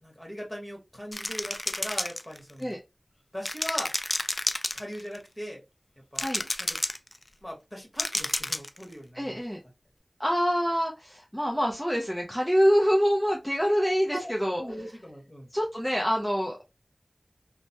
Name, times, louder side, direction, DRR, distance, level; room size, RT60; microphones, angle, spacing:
voice 1, 0.0-2.8 3.3-3.9 4.7-5.6 6.1-6.2 6.6-6.8 7.4-9.4 14.1-15.5, equal, 20° left, 1.5 m, -39 dB
sound 1, 1.1-2.6 3.5-5.2 6.2-7.2 8.0-8.8, left 1 dB, 40° left, 0.3 m, -30 dB
voice 2, 9.1-9.6 10.2-14.6 15.5-16.6, equal, ahead, 0.6 m, -25 dB
2.9 x 2.2 x 2.7 m
wide cardioid pair, 55°, 0 cm